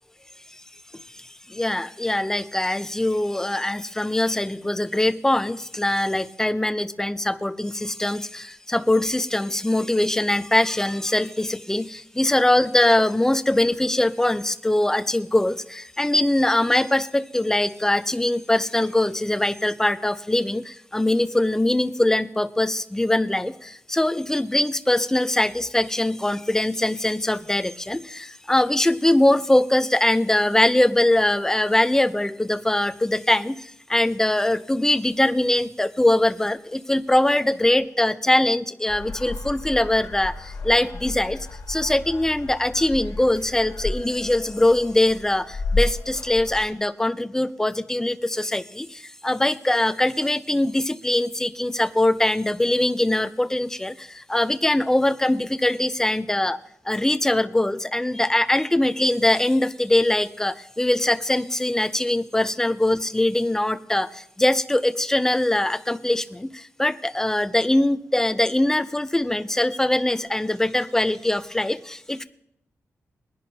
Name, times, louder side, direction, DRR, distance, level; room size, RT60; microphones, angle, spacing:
voice 1, 1.2-56.6 56.9-72.2, left 1 dB, 10° left, 12 dB, 0.5 m, -22 dB
sound 1, 38.9-46.6, left 2 dB, 80° left, 1.8 m, -32 dB
22.0 x 10.5 x 2.8 m, 0.76 s
wide cardioid pair, 135°, 6 cm